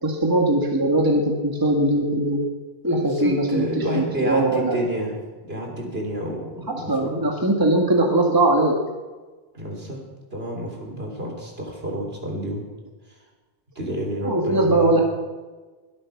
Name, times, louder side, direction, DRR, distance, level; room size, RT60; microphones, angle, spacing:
voice 1, 0.0-2.4 2.8-4.8 6.7-8.8 14.2-15.0, right 1 dB, 20° right, 1 dB, 1.7 m, -20 dB
voice 2, 2.8-7.2 9.5-10.0 10.3-12.7 13.8-15.0, equal, 65° right, 0 dB, 3.6 m, -29 dB
21.5 x 8.7 x 6.0 m, 1.3 s
omnidirectional pair, 1.1 m